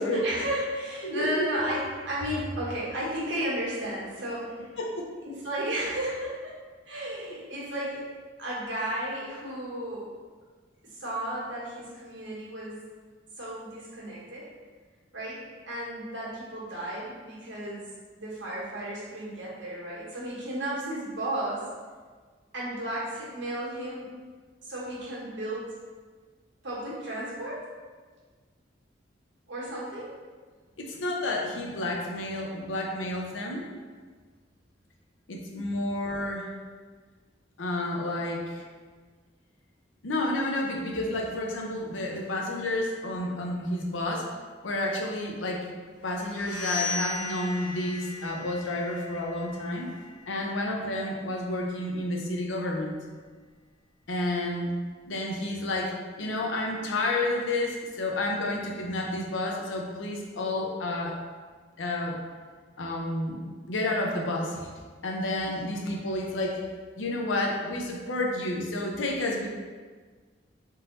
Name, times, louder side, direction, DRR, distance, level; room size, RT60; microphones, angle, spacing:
voice 1, 0.1-4.7 5.2-6.5 6.9-8.0 8.4-10.1 10.9-12.8 13.4-14.5 15.1-17.8 18.2-21.6 22.5-24.1 24.6-25.7 26.6-27.6 29.5-30.1 65.4-65.6, right 1 dB, 70° right, -7 dB, 1.4 m, -33 dB
voice 2, 1.0-1.5 4.8-5.1 30.8-33.6 35.3-36.5 37.6-38.6 40.0-44.3 44.6-45.7 46.0-49.9 50.3-52.9 54.1-54.7 55.1-61.2 61.8-62.2 62.8-64.7 65.0-66.6 67.0-69.5, left 1 dB, 85° left, 0 dB, 0.7 m, -30 dB
sound 1, 46.1-51.7, left 3 dB, 60° left, 1.4 m, -38 dB
3.8 x 2.7 x 3.9 m, 1.5 s
head